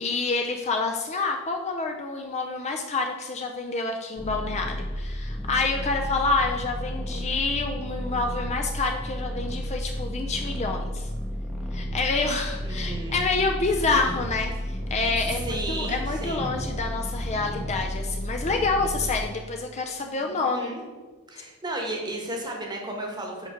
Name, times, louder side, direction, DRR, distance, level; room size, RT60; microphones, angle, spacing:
voice 1, 0.0-11.1 11.7-20.7, left 3 dB, 30° left, 3 dB, 0.4 m, -28 dB
sound 1, 4.2-19.2, equal, ahead, 0.7 m, -32 dB
voice 2, 12.6-13.2 15.4-16.5 20.2-20.8 21.3-23.5, right 1 dB, 20° right, 1 dB, 1.1 m, -34 dB
5.2 x 5.1 x 5.0 m, 1.3 s
head